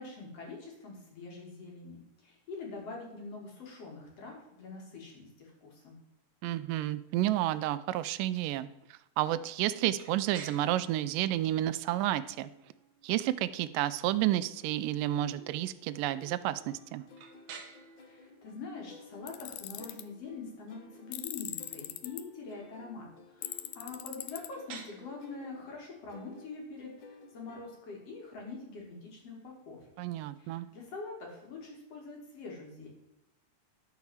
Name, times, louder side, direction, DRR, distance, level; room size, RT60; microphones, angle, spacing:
voice 1, 0.0-6.0 18.1-29.9 30.4-32.9, left 3 dB, 50° left, 0 dB, 3.1 m, -44 dB
voice 2, 6.4-12.5 13.0-17.0 30.0-30.7, right 14 dB, 85° right, 15 dB, 2.2 m, -31 dB
sound 1, 9.9-29.7, right 6 dB, 65° right, 2.4 m, -56 dB
sound 2, 14.5-28.2, left 3 dB, 65° left, 1.1 m, -56 dB
Tools, 19.3-20.0 21.1-22.2 23.4-24.5, left 14 dB, 85° left, 1.6 m, -40 dB
11.5 x 4.7 x 7.1 m, 0.87 s
omnidirectional pair, 3.8 m